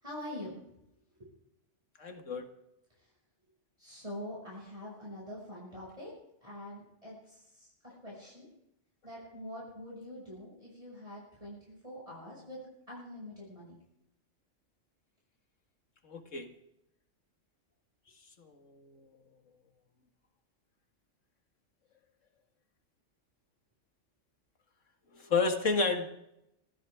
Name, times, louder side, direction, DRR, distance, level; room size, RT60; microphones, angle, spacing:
voice 1, 0.0-0.6 1.2-1.3 3.8-6.1 6.4-7.7 8.0-8.5 9.0-12.6 12.9-13.8, left 1 dB, 30° right, -5 dB, 6.4 m, -45 dB
voice 2, 2.0-2.5 16.1-16.5 18.4-18.9 25.1-26.1, left 4 dB, 90° left, 5 dB, 2.1 m, -31 dB
25.5 x 15.0 x 3.6 m, 0.83 s
omnidirectional pair, 1.3 m